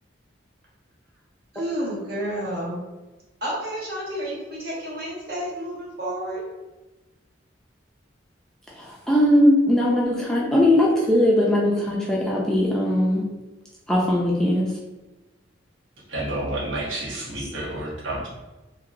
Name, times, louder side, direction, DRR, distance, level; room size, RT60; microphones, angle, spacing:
voice 1, 1.5-2.8 3.4-6.4, right 1 dB, 55° right, -6 dB, 1.3 m, -30 dB
voice 2, 8.8-13.2 13.9-14.7, left 1 dB, 5° left, -4 dB, 0.4 m, -20 dB
voice 3, 16.1-18.3, right 1 dB, 80° right, -7 dB, 1.2 m, -29 dB
2.9 x 2.8 x 2.5 m, 1.1 s
head